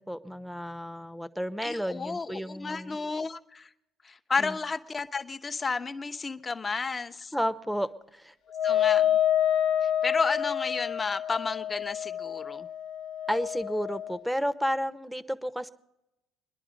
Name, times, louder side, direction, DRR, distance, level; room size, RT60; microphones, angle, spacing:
voice 1, 0.0-3.0 4.4-4.6 7.3-8.3 13.3-15.7, equal, ahead, 14 dB, 0.9 m, -32 dB
voice 2, 1.6-3.7 4.0-7.3 8.6-9.2 10.0-12.7, left 4 dB, 30° left, 8 dB, 0.9 m, -32 dB
Wind instrument woodwind instrument, 8.5-14.2, left 10 dB, 65° left, 0.9 m, -28 dB
24.0 x 11.0 x 5.2 m, 0.91 s
supercardioid pair, 70°, 0 cm